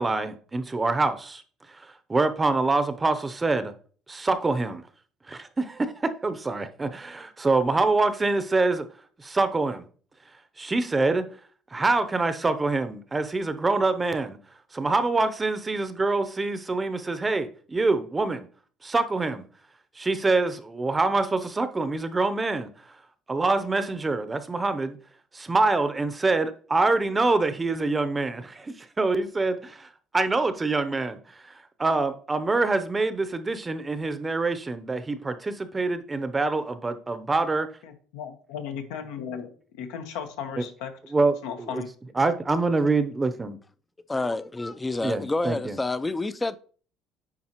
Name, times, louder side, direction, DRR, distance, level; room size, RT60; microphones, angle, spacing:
voice 1, 0.0-1.4 1.8-3.7 4.1-4.8 5.3-8.9 9.2-9.8 10.6-11.3 11.7-14.4 14.7-18.5 18.8-19.4 20.0-22.7 23.3-25.0 25.3-37.7 40.6-40.7 41.1-41.8 42.2-43.6 45.0-45.8, right 3 dB, 20° right, 0.6 m, -25 dB
voice 2, 37.8-40.9 41.4-41.9, left 7 dB, 90° left, 1.0 m, -36 dB
voice 3, 44.1-46.6, left 2 dB, 15° left, 0.4 m, -28 dB
9.6 x 4.2 x 2.9 m
supercardioid pair, 90°, 0 cm